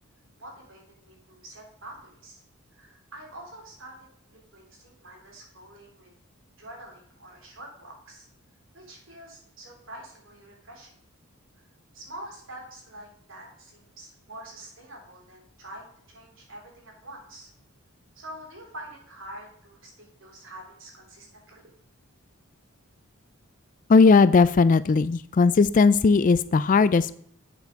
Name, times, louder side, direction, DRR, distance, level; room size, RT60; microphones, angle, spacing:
voice 1, 0.4-2.4 2.7-6.1 6.6-8.3 8.7-11.0 11.6-11.7 11.9-17.5 18.1-21.7, right 1 dB, 60° right, 0 dB, 3.6 m, -46 dB
voice 2, 23.9-27.1, left 4 dB, 35° left, 16 dB, 0.3 m, -18 dB
8.2 x 7.0 x 5.2 m, 0.65 s
head